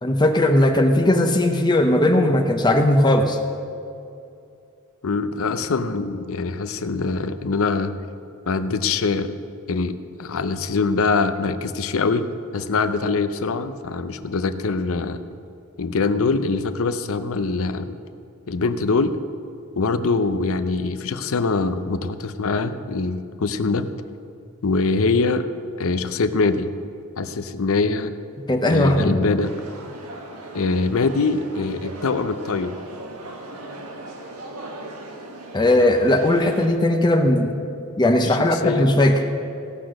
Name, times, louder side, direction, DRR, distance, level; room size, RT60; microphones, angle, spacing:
voice 1, 0.0-3.4 28.5-29.2 35.5-37.5 38.0-39.2, left 1 dB, 20° left, 5 dB, 0.7 m, -18 dB
voice 2, 5.0-7.9 8.5-9.3 9.7-12.3 12.5-15.2 15.8-18.0 18.5-19.2 19.8-23.9 24.6-25.4 25.8-26.7 27.2-28.1 28.7-29.5 30.5-32.7 38.2-38.9, left 4 dB, 65° left, 10 dB, 0.6 m, -23 dB
sound 1, 29.4-36.7, right 2 dB, 85° right, 1.5 m, -38 dB
17.0 x 6.1 x 6.3 m, 2.6 s
head